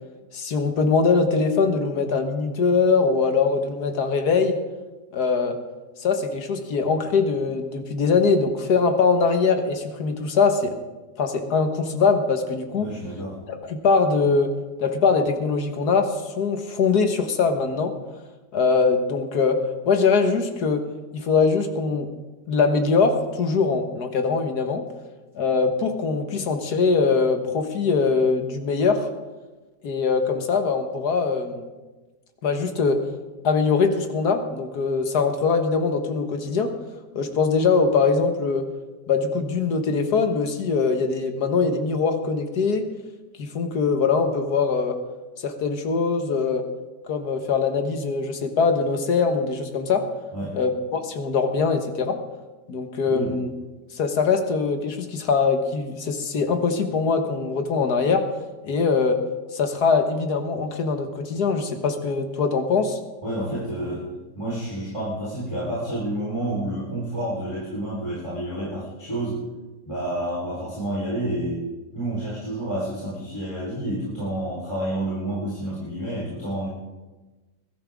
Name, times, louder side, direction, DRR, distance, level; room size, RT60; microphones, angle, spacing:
voice 1, 0.3-4.6 5.1-5.6 6.0-10.7 11.2-12.9 13.5-14.5 14.8-17.9 18.5-19.6 19.9-20.8 21.1-22.1 22.5-24.8 25.4-29.1 29.8-31.7 32.4-33.0 33.4-36.7 37.2-38.7 39.1-42.8 43.4-45.0 45.4-46.6 47.1-50.0 50.5-52.2 52.7-53.5 53.9-58.2 58.6-59.2 59.5-63.0 63.6-63.7, left 4 dB, 65° left, 6 dB, 1.9 m, -22 dB
voice 2, 12.8-13.4 50.3-50.6 53.0-53.4 63.2-64.0 64.3-69.4 69.9-71.6 71.9-76.7, right 1 dB, 15° left, -8 dB, 4.2 m, -29 dB
21.0 x 13.0 x 3.6 m, 1.2 s
omnidirectional pair, 1.8 m